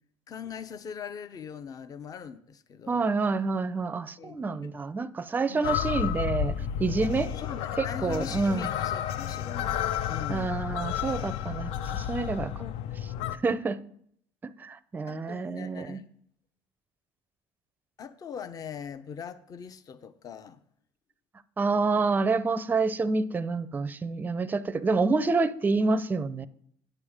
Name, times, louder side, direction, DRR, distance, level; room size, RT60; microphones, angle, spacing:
voice 1, 0.3-3.0 4.2-4.7 5.5-6.1 7.3-10.6 12.6-12.7 13.2-13.4 15.1-16.0 18.0-20.6, left 7 dB, 40° left, 0.7 m, -41 dB
voice 2, 2.9-7.3 7.8-8.7 10.3-12.5 13.4-13.8 14.6-16.0 21.6-26.5, right 3 dB, 20° right, 0.5 m, -28 dB
sound 1, 5.6-13.4, left 10 dB, 70° left, 0.6 m, -31 dB
8.8 x 8.0 x 5.0 m
supercardioid pair, 105°, 10 cm